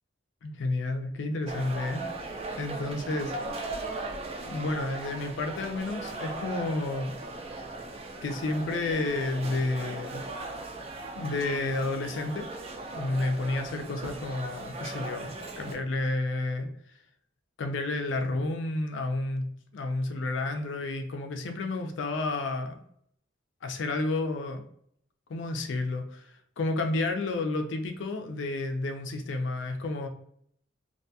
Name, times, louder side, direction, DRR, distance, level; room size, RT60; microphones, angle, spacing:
voice 1, 0.4-2.1 2.6-3.5 4.0-4.1 4.4-7.2 8.2-10.2 11.1-12.5 12.9-16.7 17.6-22.8 23.6-24.6 25.3-26.3 26.6-30.1, left 2 dB, 70° left, 6 dB, 0.4 m, -31 dB
sound 1, 1.5-15.8, right 2 dB, 30° right, 0.4 m, -38 dB
2.6 x 2.2 x 2.7 m, 0.68 s
head